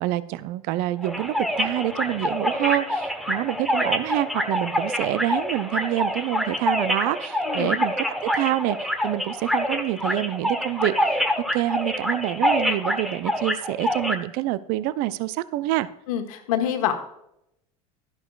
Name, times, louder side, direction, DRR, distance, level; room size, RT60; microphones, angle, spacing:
voice 1, 0.0-7.9 8.2-11.2 11.5-15.9, right 15 dB, 55° right, 16 dB, 0.5 m, -27 dB
sound 1, 1.0-14.2, equal, ahead, 1.1 m, -26 dB
voice 2, 16.1-16.9, left 10 dB, 75° left, 5 dB, 1.3 m, -25 dB
12.0 x 10.5 x 2.3 m, 0.79 s
hypercardioid pair, 75°, 18 cm